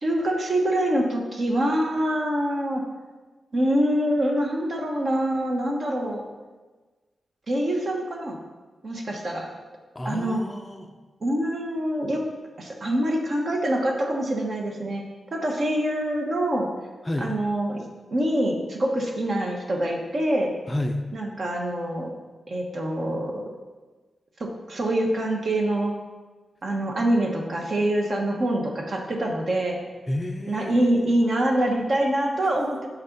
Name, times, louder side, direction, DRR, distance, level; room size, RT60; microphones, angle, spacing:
voice 1, 0.0-2.8 3.5-6.2 7.5-8.4 8.8-9.5 10.0-10.4 11.2-12.2 12.6-15.0 15.3-16.7 17.2-17.8 18.1-20.5 21.1-22.1 22.5-23.4 24.4-25.9 26.6-29.8 30.5-32.9, right 1 dB, 45° right, 1 dB, 1.2 m, -25 dB
voice 2, 9.9-10.9 17.0-17.3 20.7-21.0 30.1-31.1, left 1 dB, 15° left, 5 dB, 0.5 m, -30 dB
6.4 x 6.1 x 5.3 m, 1.3 s
wide cardioid pair, 155°, 0 cm